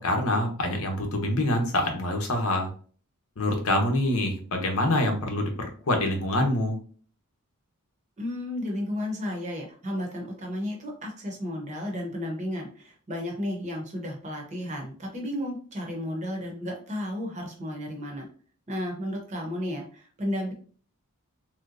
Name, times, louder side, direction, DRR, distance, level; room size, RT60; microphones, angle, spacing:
voice 1, 0.0-2.7 3.4-6.8, left 1 dB, 75° left, 3 dB, 0.8 m, -25 dB
voice 2, 8.2-18.2 18.7-20.5, left 1 dB, 30° right, 1 dB, 0.8 m, -33 dB
3.3 x 2.8 x 2.5 m, 0.43 s
head